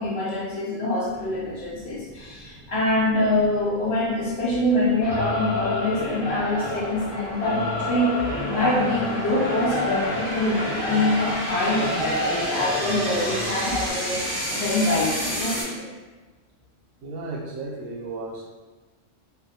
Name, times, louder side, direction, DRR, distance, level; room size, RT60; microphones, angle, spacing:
voice 1, 0.0-8.1 8.4-15.9, left 1 dB, 65° left, -6 dB, 0.7 m, -25 dB
sound 1, 1.1-15.6, equal, 20° right, 1.0 m, -33 dB
Singing / Musical instrument, 5.0-13.9, left 1 dB, 40° left, 0.4 m, -29 dB
voice 2, 17.0-18.4, right 3 dB, 65° right, -3 dB, 0.8 m, -34 dB
2.2 x 2.1 x 2.6 m, 1.3 s
omnidirectional pair, 1.3 m